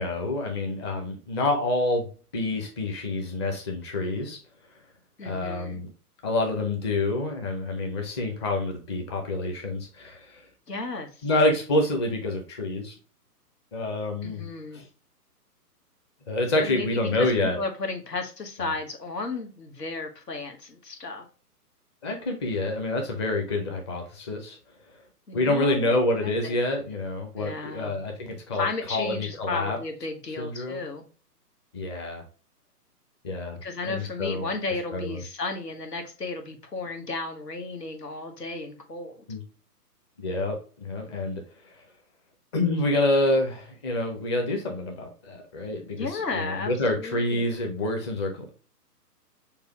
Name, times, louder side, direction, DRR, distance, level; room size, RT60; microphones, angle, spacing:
voice 1, 0.0-4.4 5.2-5.9 6.2-10.4 11.2-12.9 13.7-14.5 14.7-14.9 16.3-17.6 18.6-18.7 22.0-24.6 25.3-29.8 30.4-30.8 31.7-32.2 33.2-34.5 34.9-35.2 39.3-39.4 40.2-41.7 42.5-48.5, left 2 dB, 20° left, 0.7 m, -27 dB
voice 2, 5.2-5.9 10.7-11.3 14.2-14.8 16.6-16.9 17.1-21.2 25.3-26.6 27.4-28.0 28.5-31.0 33.6-39.2 45.9-47.5, left 3 dB, 80° left, 1.5 m, -34 dB
6.6 x 2.4 x 3.0 m
figure-of-eight pair, 135°, 47 cm